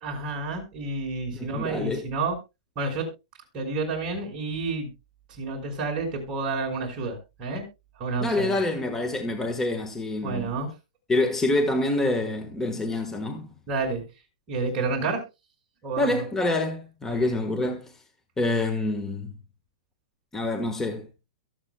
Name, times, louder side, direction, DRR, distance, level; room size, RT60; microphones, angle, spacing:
voice 1, 0.0-2.4 2.8-3.1 3.5-4.9 5.3-7.6 8.0-8.6 10.2-10.7 13.7-14.0 14.5-15.2 15.8-16.1 17.1-17.2, right 3 dB, 25° right, 5.2 m, -29 dB
voice 2, 1.3-2.0 8.2-10.5 11.1-13.5 16.0-17.9 18.4-19.3 20.3-21.1, left 2 dB, 10° left, 1.4 m, -26 dB
23.0 x 8.0 x 2.2 m
hypercardioid pair, 145°, 4 cm